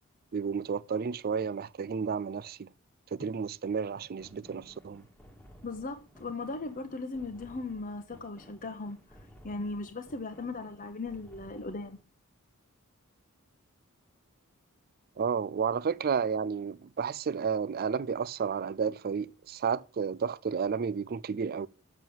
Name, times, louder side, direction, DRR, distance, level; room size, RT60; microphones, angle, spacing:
voice 1, 0.3-2.7 3.1-5.0 15.2-21.7, right 6 dB, 45° right, 0.4 m, -31 dB
sound 1, 4.2-12.0, equal, 5° left, 1.5 m, -55 dB
voice 2, 5.6-9.0 9.4-12.0, left 3 dB, 40° left, 0.9 m, -38 dB
7.3 x 7.3 x 7.6 m
head